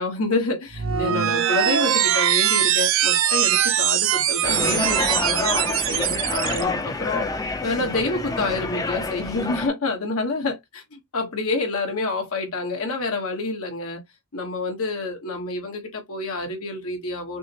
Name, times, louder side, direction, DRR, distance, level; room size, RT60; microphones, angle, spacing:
voice 1, 0.0-7.3 7.6-14.0 14.3-17.4, left 3 dB, 80° left, 1.3 m, -28 dB
sine granulation, 0.7-6.6, right 10 dB, 65° right, 0.5 m, -21 dB
sound 1, 4.4-9.7, left 3 dB, 15° left, 0.4 m, -28 dB
6.0 x 2.0 x 2.9 m
head